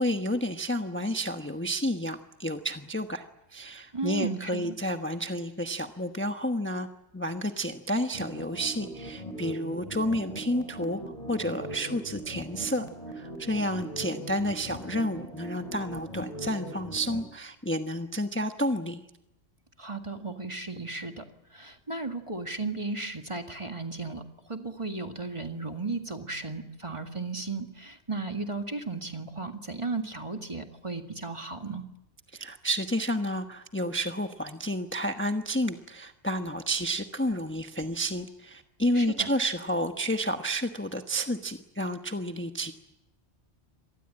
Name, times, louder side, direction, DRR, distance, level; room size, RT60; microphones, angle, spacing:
voice 1, 0.0-3.2 3.5-6.9 7.1-12.9 13.1-19.0 32.3-42.7, equal, 10° left, 6 dB, 1.1 m, -30 dB
voice 2, 3.9-4.7 19.8-21.2 21.5-31.8 38.9-39.3, right 3 dB, 25° right, 5 dB, 1.9 m, -35 dB
sound 1, 8.1-17.2, right 1 dB, 35° left, 3.2 m, -40 dB
26.0 x 19.5 x 8.8 m, 0.86 s
omnidirectional pair, 1.2 m